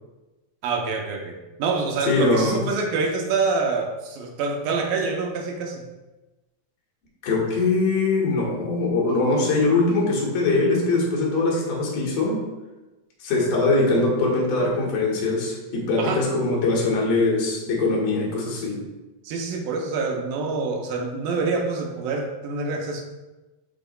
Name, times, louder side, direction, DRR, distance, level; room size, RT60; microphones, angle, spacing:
voice 1, 0.6-5.8 16.0-16.2 19.2-23.0, right 4 dB, 80° right, 1 dB, 2.2 m, -26 dB
voice 2, 2.1-2.7 7.2-12.4 13.2-18.8, left 3 dB, 90° left, -3 dB, 3.3 m, -22 dB
11.5 x 4.0 x 2.2 m, 1.1 s
omnidirectional pair, 4.2 m